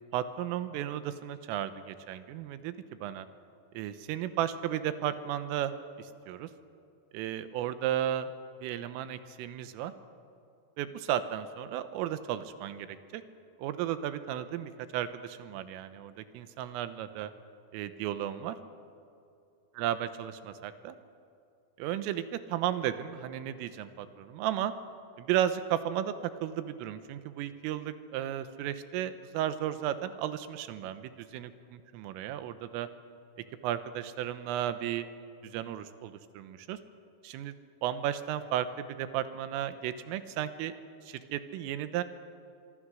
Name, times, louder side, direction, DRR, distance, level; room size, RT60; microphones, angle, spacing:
voice 1, 0.0-3.3 3.8-5.7 6.0-6.5 7.1-8.3 8.6-9.9 10.8-13.2 13.6-17.3 17.7-18.6 19.8-21.0 21.8-24.7 25.2-26.2 26.4-31.5 31.9-32.9 33.6-35.1 35.4-36.8 37.2-37.6 37.8-40.7 41.1-42.0, right 11 dB, 85° right, 11 dB, 3.6 m, -34 dB
25.0 x 23.0 x 6.3 m, 2.6 s
omnidirectional pair, 5.8 m